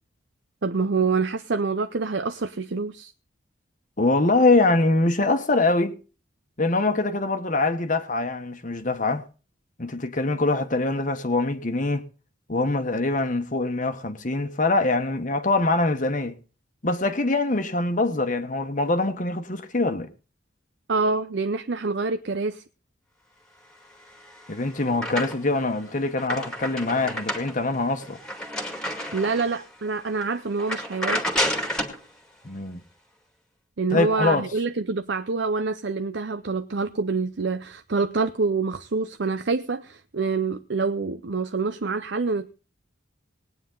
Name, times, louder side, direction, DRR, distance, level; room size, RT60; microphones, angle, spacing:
voice 1, 0.6-3.1 20.9-22.6 29.1-31.2 33.8-42.5, right 4 dB, 65° right, 0.7 m, -26 dB
voice 2, 4.0-6.0 6.6-9.2 9.8-12.0 12.5-16.3 16.8-20.1 24.5-28.2 32.4-32.8 33.9-34.5, left 2 dB, 40° left, 1.2 m, -23 dB
sound 1, 24.1-25.6 26.0-29.6 30.1-30.2 30.6-32.0, equal, 5° left, 2.0 m, -30 dB
19.5 x 9.5 x 3.8 m
head